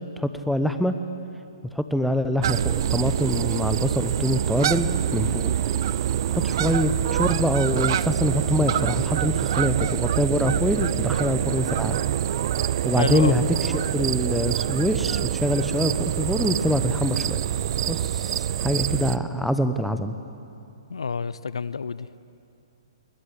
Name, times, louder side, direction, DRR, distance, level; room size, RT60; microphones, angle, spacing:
voice 1, 0.2-0.9 1.7-5.5 6.3-12.0 12.8-13.4 13.9-17.4 17.9-20.2, equal, ahead, 9 dB, 1.0 m, -25 dB
sound 1, 2.4-19.2, right 11 dB, 55° right, 0.6 m, -25 dB
sound 2, 3.8-19.1, right 3 dB, 25° right, 6.8 m, -45 dB
voice 2, 13.0-13.4 20.9-22.1, left 5 dB, 80° left, 18 dB, 0.6 m, -28 dB
21.0 x 21.0 x 8.8 m, 2.6 s
hypercardioid pair, 125°, 3 cm